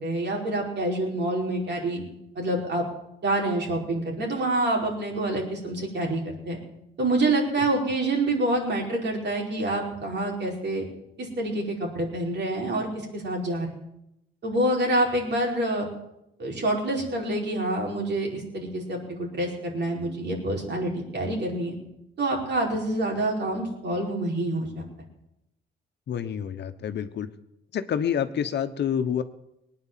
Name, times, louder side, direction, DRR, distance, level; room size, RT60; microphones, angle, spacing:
voice 1, 0.0-2.0 2.3-2.8 3.2-6.6 7.0-10.9 11.2-12.9 13.1-13.7 14.4-15.9 16.4-21.7 22.2-24.8, right 1 dB, 60° right, 0 dB, 5.0 m, -27 dB
voice 2, 26.1-27.3 27.7-29.2, left 8 dB, 60° left, 9 dB, 1.2 m, -28 dB
19.5 x 9.6 x 7.6 m, 0.83 s
cardioid pair, 90°, 20 cm